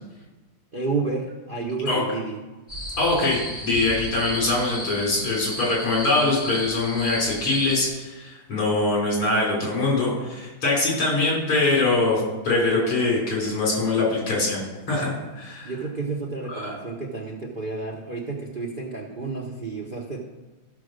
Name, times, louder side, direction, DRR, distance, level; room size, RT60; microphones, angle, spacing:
voice 1, 0.7-2.4 15.6-20.2, right 4 dB, 45° right, -1 dB, 0.6 m, -30 dB
sound 1, 2.7-7.9, left 1 dB, 20° left, 2.9 m, -34 dB
voice 2, 3.0-14.6 14.9-15.7 16.5-16.7, left 2 dB, 80° left, -4 dB, 4.7 m, -23 dB
14.0 x 4.9 x 6.4 m, 1.1 s
omnidirectional pair, 2.3 m